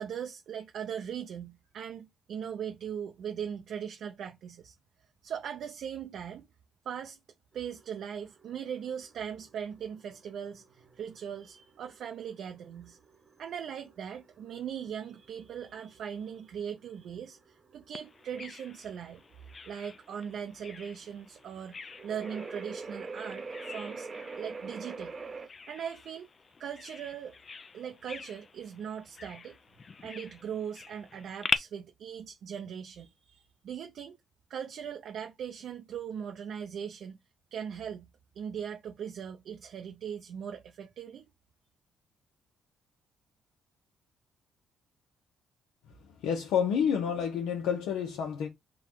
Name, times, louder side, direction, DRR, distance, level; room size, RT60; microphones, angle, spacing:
voice 1, 0.0-4.7 5.2-6.5 6.8-7.2 7.5-13.0 13.4-19.2 19.7-24.1 24.4-25.2 25.7-26.3 26.6-27.4 27.7-29.6 30.0-34.2 34.5-37.2 37.5-38.1 38.3-41.3, right 8 dB, 70° right, 0.6 m, -39 dB
sound 1, 7.5-25.5, right 4 dB, 30° right, 0.9 m, -45 dB
Bird vocalization bird call bird song, 17.9-31.6, left 5 dB, 40° left, 0.4 m, -42 dB
voice 2, 46.0-48.5, left 7 dB, 90° left, 0.8 m, -29 dB
3.8 x 2.4 x 4.4 m
cardioid pair, 90°, 0 cm